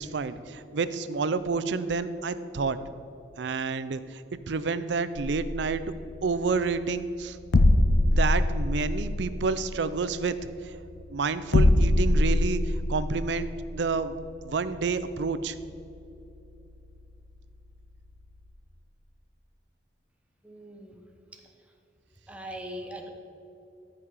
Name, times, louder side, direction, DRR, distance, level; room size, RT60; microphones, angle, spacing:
voice 1, 0.0-2.8 3.4-5.8 6.2-7.4 8.0-10.4 10.6-10.7 11.1-14.2 14.4-15.6, right 4 dB, 80° right, 13 dB, 0.5 m, -29 dB
sound 1, 5.2-18.5, left 1 dB, 85° left, 0.6 m, -27 dB
voice 2, 20.4-21.0 22.3-23.1, equal, 5° right, 2 dB, 1.0 m, -40 dB
14.0 x 5.7 x 4.9 m, 2.8 s
head